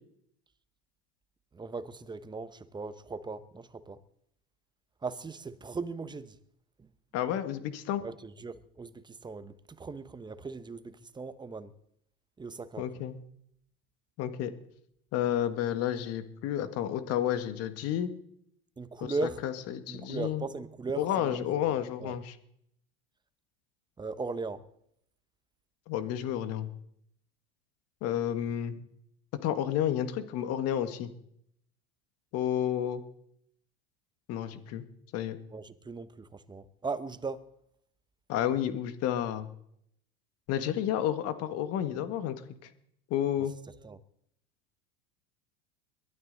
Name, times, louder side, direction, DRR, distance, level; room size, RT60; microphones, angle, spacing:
voice 1, 1.5-4.0 5.0-6.4 6.8-6.9 8.0-11.7 12.4-12.9 18.8-19.5 19.9-21.5 22.0-22.2 24.0-24.6 35.5-37.4 43.4-43.5 43.8-44.0, right 4 dB, 15° right, 1.0 m, -38 dB
voice 2, 7.1-8.0 12.8-13.2 14.2-14.5 15.1-18.1 19.0-20.4 21.0-22.3 25.9-26.7 28.0-28.8 29.4-31.1 32.3-33.0 34.3-34.8 35.1-35.4 38.3-39.5 40.5-42.3 43.1-43.5, left 10 dB, 55° left, 1.6 m, -31 dB
22.0 x 12.5 x 4.0 m
hypercardioid pair, 100°, 29 cm